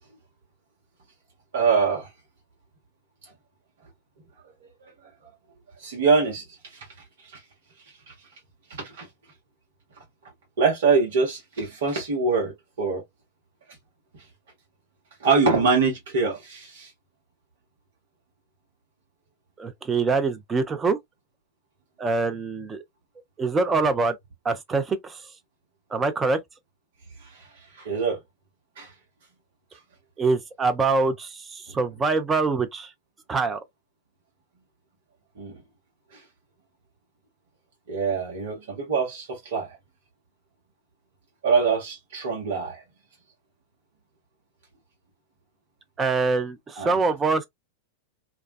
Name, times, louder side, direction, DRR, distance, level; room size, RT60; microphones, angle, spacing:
voice 1, 1.5-2.1 4.8-4.9 5.8-6.4 6.7-6.8 7.3-7.4 8.1-8.2 8.8-9.1 10.6-13.0 15.2-16.9 27.4-27.5 27.8-28.2 28.8-28.9 35.4-35.6 36.1-36.2 37.9-39.8 41.4-42.8 46.8-47.0, right 4 dB, 60° right, 1.0 m, -24 dB
voice 2, 19.6-21.0 22.0-22.8 23.4-24.2 24.4-25.2 25.9-26.4 30.2-32.9 33.3-33.6 46.0-47.5, right 4 dB, 15° right, 0.4 m, -24 dB
2.3 x 2.2 x 2.3 m
figure-of-eight pair, 90°, 0 cm